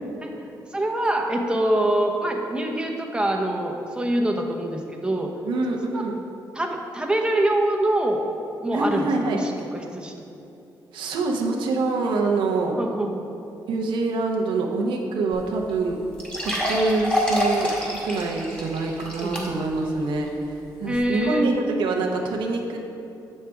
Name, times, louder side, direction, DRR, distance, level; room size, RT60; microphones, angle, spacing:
voice 1, 0.7-5.3 5.9-6.0 6.5-8.2 8.6-10.1 12.8-13.2 19.2-19.6 20.9-21.5, right 1 dB, 10° right, 1 dB, 0.8 m, -25 dB
voice 2, 5.4-6.2 8.7-9.4 10.9-12.8 13.7-16.0 16.3-20.3 20.8-21.5 21.8-22.8, right 3 dB, 85° right, 0 dB, 0.8 m, -25 dB
sound 1, 15.3-15.4 15.7-15.8 16.2-19.8 20.3-20.4 20.9-21.0, left 1 dB, 10° left, 1.7 m, -27 dB
7.2 x 6.5 x 3.4 m, 2.7 s
cardioid pair, 75°, 8 cm